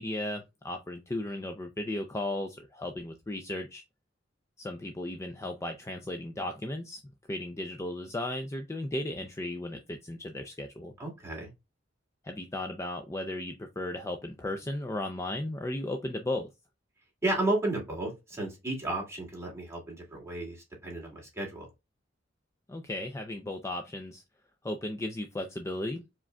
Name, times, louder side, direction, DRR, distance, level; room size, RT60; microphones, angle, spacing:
voice 1, 0.0-3.8 4.6-7.0 7.3-10.9 12.2-16.5 22.7-24.2 24.6-26.0, left 1 dB, 15° left, 0.4 m, -35 dB
voice 2, 11.0-11.5 17.2-21.7, right 2 dB, 15° right, 2.1 m, -33 dB
4.8 x 3.7 x 2.2 m
head